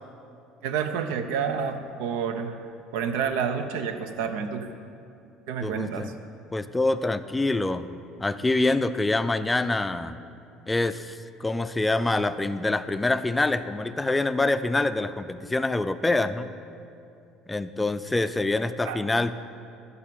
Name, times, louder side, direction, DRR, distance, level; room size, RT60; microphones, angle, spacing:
voice 1, 0.6-2.6 2.9-4.7 5.5-6.1 18.8-19.0, right 6 dB, 85° right, 8 dB, 0.6 m, -29 dB
voice 2, 5.6-6.1 6.5-7.9 8.2-10.2 10.7-16.5 17.5-19.3, left 2 dB, 10° left, 12 dB, 0.4 m, -25 dB
12.0 x 4.1 x 7.6 m, 2.5 s
supercardioid pair, 105°, 0 cm